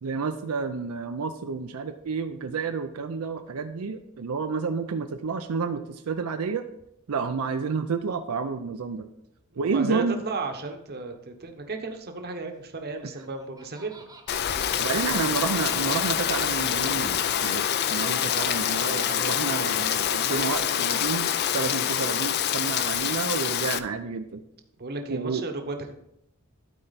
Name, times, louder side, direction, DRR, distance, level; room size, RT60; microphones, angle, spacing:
voice 1, 0.0-6.7 7.1-9.1 9.6-10.2 14.8-24.4 25.1-25.4, right 5 dB, 85° right, 6 dB, 0.5 m, -30 dB
voice 2, 9.6-15.1 24.8-25.8, right 3 dB, 45° right, 5 dB, 1.0 m, -35 dB
Laughter, 12.9-16.7, right 3 dB, 15° right, 0.9 m, -51 dB
Rain, 14.3-23.8, left 9 dB, 50° left, 0.4 m, -26 dB
12.0 x 4.5 x 4.0 m, 0.80 s
head